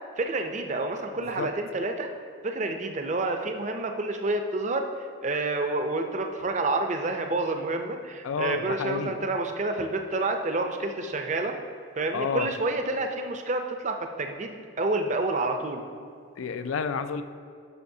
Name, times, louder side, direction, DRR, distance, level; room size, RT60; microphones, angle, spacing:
voice 1, 0.2-2.1 2.4-4.9 5.2-11.5 12.0-15.8, right 2 dB, 35° right, 5 dB, 0.5 m, -29 dB
voice 2, 8.2-9.2 12.1-12.5 16.4-17.2, left 5 dB, 80° left, 10 dB, 0.4 m, -30 dB
11.5 x 5.6 x 2.7 m, 2.3 s
head